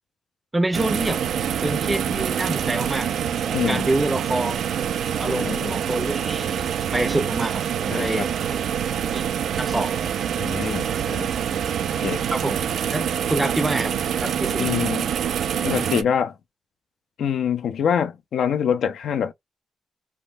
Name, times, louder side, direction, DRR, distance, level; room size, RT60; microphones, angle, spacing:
voice 1, 0.5-1.2 1.6-3.1 3.4-4.7 5.2-6.6 6.9-8.6 9.1-9.3 9.6-10.0 12.3-12.6 12.9-14.7, right 2 dB, 15° right, 0.5 m, -27 dB
sound 1, 0.7-16.0, right 8 dB, 80° right, 0.3 m, -26 dB
voice 2, 3.5-3.8 5.2-5.7 7.9-8.3 10.4-11.3 12.0-12.2 14.6-15.1 15.6-16.3 17.2-19.3, left 8 dB, 75° left, 0.4 m, -25 dB
3.4 x 2.0 x 2.3 m
cardioid pair, 120°, 0 cm